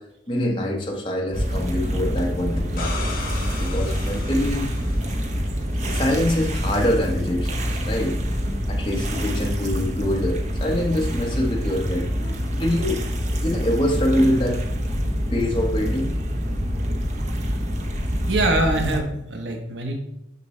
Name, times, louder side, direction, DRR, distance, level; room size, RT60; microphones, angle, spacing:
voice 1, 0.3-2.9 3.6-4.7 5.9-8.1 8.7-13.0 13.4-14.6 15.3-16.1 17.6-17.7, left 1 dB, 25° left, 0 dB, 1.1 m, -24 dB
sound 1, 1.3-19.0, equal, 40° right, 0.8 m, -26 dB
sound 2, 2.6-5.4 8.2-8.3, left 3 dB, 50° left, 1.3 m, -35 dB
voice 2, 18.2-20.0, right 2 dB, 80° right, 3 dB, 1.0 m, -24 dB
6.7 x 6.1 x 3.2 m, 0.83 s
head